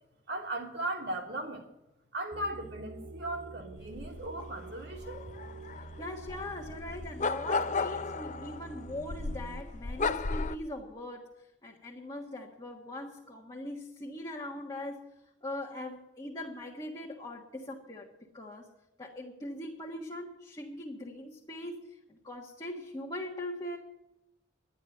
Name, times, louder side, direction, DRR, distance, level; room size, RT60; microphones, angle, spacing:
voice 1, 0.3-1.6 2.1-5.2, right 1 dB, 60° right, 1 dB, 3.1 m, -37 dB
sound 1, 2.3-9.6, right 3 dB, 80° right, 0.7 m, -47 dB
sound 2, 3.9-10.6, left 4 dB, 40° left, 0.6 m, -35 dB
voice 2, 6.0-15.1 15.4-18.7 19.0-23.8, left 1 dB, 20° left, -2 dB, 1.5 m, -41 dB
11.5 x 10.0 x 7.8 m, 0.88 s
head